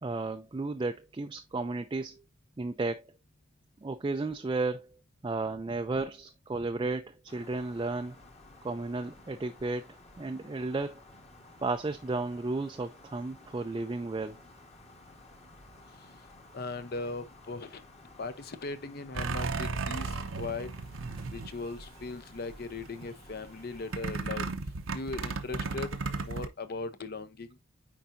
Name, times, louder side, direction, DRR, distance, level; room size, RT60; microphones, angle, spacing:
voice 1, 0.0-2.2 2.6-3.0 3.8-8.2 8.6-9.9 10.2-11.0 11.6-14.4, right 3 dB, 25° right, 0.4 m, -33 dB
sound 1, 7.3-24.2, left 2 dB, 30° left, 1.3 m, -54 dB
voice 2, 16.5-17.8 18.2-20.7 21.3-24.5 24.9-25.9 26.2-27.6, left 3 dB, 50° left, 0.7 m, -38 dB
sound 2, 19.2-22.1 22.5-23.1 23.9-26.5, right 4 dB, 80° right, 0.8 m, -34 dB
8.7 x 4.6 x 2.6 m
head